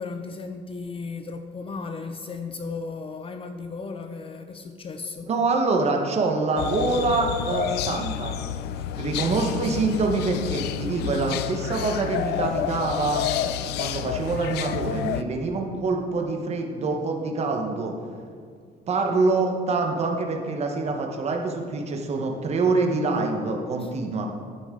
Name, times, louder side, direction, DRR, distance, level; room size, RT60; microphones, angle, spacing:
voice 1, 0.0-5.3 9.1-9.4 19.1-19.3 23.8-23.9, left 4 dB, 35° left, 8 dB, 0.5 m, -35 dB
voice 2, 5.3-8.3 9.0-13.2 13.8-17.9 18.9-24.3, right 3 dB, 40° right, 2 dB, 1.2 m, -25 dB
sound 1, 6.6-15.2, left 10 dB, 80° left, 0.5 m, -29 dB
9.6 x 9.5 x 3.8 m, 2.1 s
cardioid pair, 110°, 17 cm